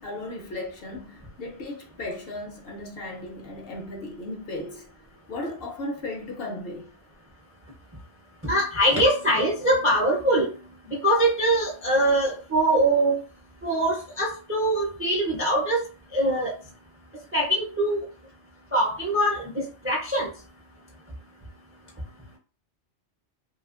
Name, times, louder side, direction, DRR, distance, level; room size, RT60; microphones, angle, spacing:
voice 1, 0.0-4.9 5.3-6.9, left 2 dB, 65° left, 0.7 m, -36 dB
voice 2, 8.4-10.5 10.9-13.2 13.6-15.8 16.1-16.5 17.3-18.0 18.7-20.3, right 1 dB, 20° right, 0.3 m, -23 dB
2.8 x 2.3 x 2.4 m
omnidirectional pair, 1.2 m